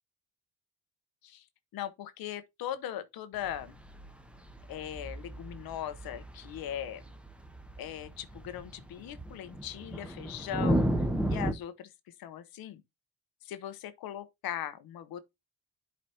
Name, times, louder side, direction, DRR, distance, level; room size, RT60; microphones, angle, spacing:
voice 1, 1.7-3.8 4.7-7.0 7.8-10.9 11.3-11.9 12.2-12.8 13.4-15.2, left 10 dB, 75° left, 0.9 m, -39 dB
sound 1, 3.4-11.5, right 1 dB, 5° right, 1.0 m, -34 dB
11.0 x 4.1 x 2.8 m
supercardioid pair, 65°, 36 cm